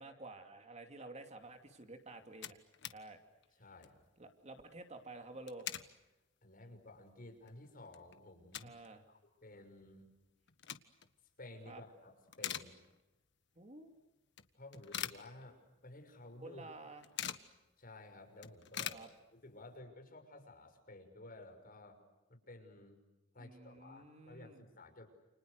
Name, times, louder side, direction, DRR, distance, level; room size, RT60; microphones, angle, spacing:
voice 1, 0.0-2.6 2.9-3.2 4.2-5.7 8.6-9.0 11.7-11.8 13.6-14.0 16.4-17.0 18.9-19.1 23.4-24.6, right 2 dB, 35° right, 6 dB, 2.8 m, -51 dB
sound 1, 1.8-1.9 2.1-3.0 3.4-3.5 3.7-4.0 5.2-5.9 6.4-6.5 7.1-7.2 7.5-8.9 9.2-9.3 10.3-11.1 11.6-11.9 12.2-13.2 13.6-13.7 14.4-15.9 16.1-16.2 16.5-17.5 17.9-18.0 18.2-19.6, left 10 dB, 65° left, 1.5 m, -44 dB
voice 2, 3.6-4.0 6.4-8.7 9.1-10.1 11.4-12.7 14.5-16.8 17.8-19.0 19.3-22.0 22.3-23.0 23.3-25.1, left 2 dB, 50° left, 5 dB, 6.2 m, -54 dB
29.5 x 29.5 x 6.5 m, 1.0 s
head